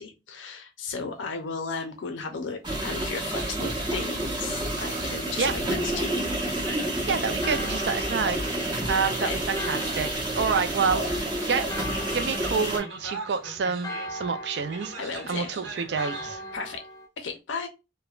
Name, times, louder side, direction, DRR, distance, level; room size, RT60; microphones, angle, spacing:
voice 1, 0.0-6.1 8.9-9.4 15.0-15.5 16.5-16.8 17.2-17.7, left 4 dB, 85° left, 0.5 m, -35 dB
sound 1, 2.6-12.8, right 1 dB, 25° right, 0.7 m, -29 dB
sound 2, 4.7-16.8, right 3 dB, 80° right, 1.0 m, -44 dB
voice 2, 7.1-8.6 8.9-10.1 10.4-11.2 11.5-11.7 12.1-14.9 15.3-16.4, right 5 dB, 65° right, 0.4 m, -28 dB
Church bell, 7.4-17.1, left 2 dB, 20° left, 0.3 m, -41 dB
3.1 x 2.1 x 2.3 m
head